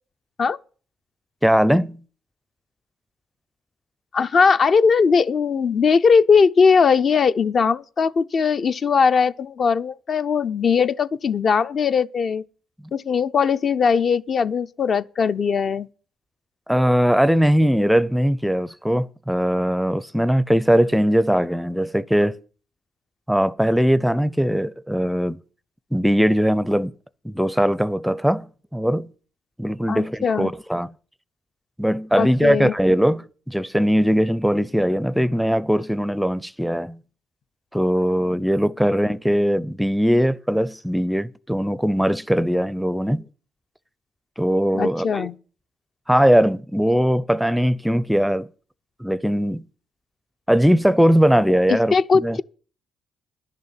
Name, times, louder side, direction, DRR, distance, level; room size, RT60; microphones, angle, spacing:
voice 1, 1.4-2.0 16.7-22.4 23.3-25.4 25.9-26.9 27.2-29.1 29.6-30.9 31.8-37.0 37.7-43.3 44.4-45.3 46.1-48.5 49.0-49.6 50.5-52.0 52.2-52.4, equal, ahead, 0.5 m, -20 dB
voice 2, 4.1-12.4 12.9-15.9 29.9-30.5 32.1-32.7 44.7-45.3 51.7-52.4, left 5 dB, 50° left, 0.5 m, -19 dB
11.0 x 6.8 x 8.8 m
cardioid pair, 90°, 0 cm